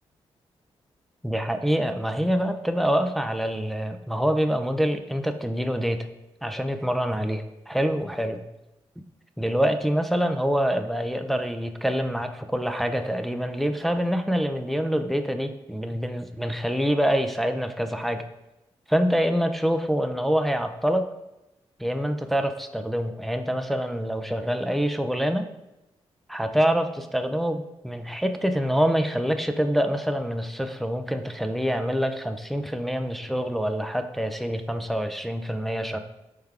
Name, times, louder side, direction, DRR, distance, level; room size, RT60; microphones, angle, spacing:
voice 1, 1.2-6.1 6.4-8.4 9.4-18.2 18.9-21.1 21.8-25.5 26.3-36.0, equal, ahead, 7 dB, 0.5 m, -26 dB
4.5 x 3.3 x 3.5 m, 0.94 s
supercardioid pair, 40°, 12 cm